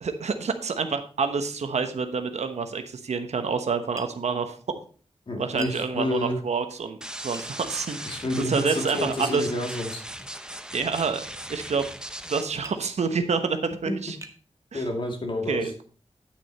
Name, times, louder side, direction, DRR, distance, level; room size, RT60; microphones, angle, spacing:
voice 1, 0.0-4.6 5.4-9.5 10.7-11.2 11.5-11.9 12.3-14.2 14.7-14.8 15.5-15.8, right 5 dB, 80° right, 8 dB, 1.0 m, -28 dB
Tap, 4.0-4.2 5.6-5.8 7.3-7.5 9.2-9.6 11.0-11.1 12.6-12.9 13.6-13.7 14.2-14.4, right 2 dB, 25° right, 1.2 m, -42 dB
voice 2, 5.3-6.4 8.1-10.0 13.9-14.0 14.7-15.7, left 1 dB, 45° left, 2 dB, 2.4 m, -29 dB
sound 1, 7.0-12.4, right 1 dB, 5° right, 0.7 m, -38 dB
10.0 x 6.2 x 4.1 m, 0.41 s
wide cardioid pair, 90°, 11 cm